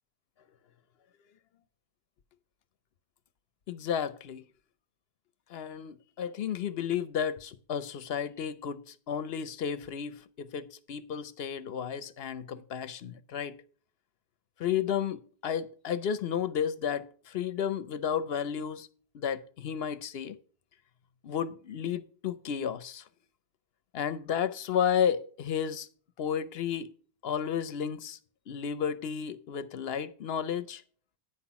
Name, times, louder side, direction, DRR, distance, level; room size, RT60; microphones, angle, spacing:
voice 1, 3.7-4.4 5.5-13.6 14.6-18.9 19.1-20.4 21.2-23.0 23.9-25.9 26.2-26.9 27.2-28.2 28.5-30.8, left 8 dB, 70° left, 0.9 m, -32 dB
9.3 x 5.9 x 5.7 m
omnidirectional pair, 1.1 m